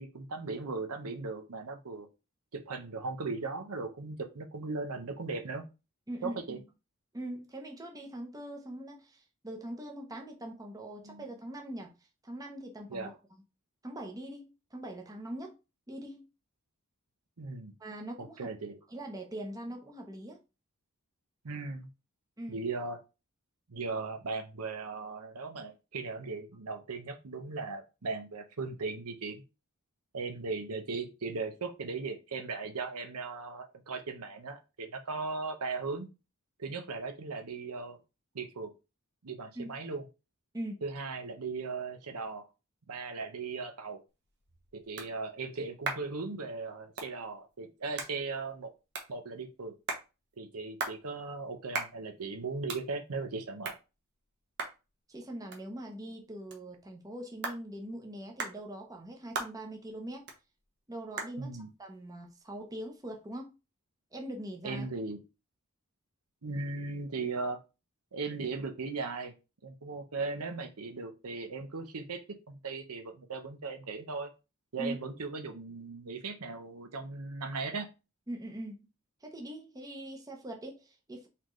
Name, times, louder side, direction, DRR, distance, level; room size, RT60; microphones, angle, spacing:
voice 1, 0.0-2.1 2.5-5.6 6.2-6.6 11.0-11.2 12.9-13.1 17.4-17.7 18.2-18.8 21.4-21.9 22.5-23.0 23.7-29.4 30.1-36.1 36.6-38.0 38.3-38.7 39.2-40.0 40.8-42.5 42.9-44.0 44.9-48.7 49.1-49.7 50.4-53.7 61.4-61.7 64.6-65.2 66.4-67.6 68.1-69.3 69.6-74.3 74.7-77.9, right 4 dB, 80° right, 0.8 m, -38 dB
voice 2, 6.1-6.6 7.1-11.9 12.2-13.1 13.8-15.6 15.9-16.3 17.8-18.5 18.9-20.4 22.4-22.6 39.5-39.8 40.5-40.8 55.1-60.3 60.9-63.6 64.1-64.9 74.8-75.0 78.3-78.8 79.2-81.3, right 1 dB, 15° right, 0.8 m, -42 dB
sound 1, 44.1-63.4, right 4 dB, 50° right, 1.0 m, -44 dB
4.2 x 3.8 x 3.1 m
head